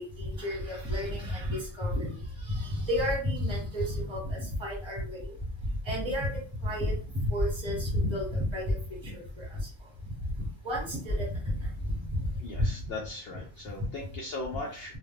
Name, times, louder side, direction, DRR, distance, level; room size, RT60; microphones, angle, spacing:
voice 1, 0.0-2.2 2.4-5.3 5.9-8.8 9.0-9.6 10.6-11.6 12.1-12.3 12.6-12.7, left 1 dB, 20° right, -2 dB, 1.1 m, -31 dB
voice 2, 12.4-15.0, left 2 dB, 60° left, -1 dB, 0.7 m, -38 dB
2.3 x 2.1 x 3.6 m, 0.39 s
omnidirectional pair, 1.4 m